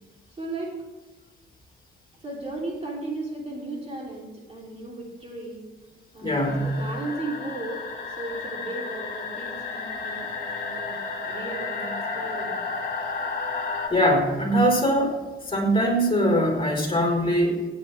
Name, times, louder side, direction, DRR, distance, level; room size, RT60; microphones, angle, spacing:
voice 1, 0.4-0.7 2.2-5.6 6.1-7.8 8.0-11.0 11.2-12.5, right 2 dB, 30° right, -3 dB, 3.2 m, -35 dB
voice 2, 6.2-6.8 13.9-15.2 15.5-17.7, equal, 25° left, 0 dB, 4.4 m, -22 dB
sound 1, 6.4-13.9, left 4 dB, 50° left, 2.6 m, -32 dB
17.5 x 9.2 x 3.4 m, 1.2 s
cardioid pair, 90°, 20 cm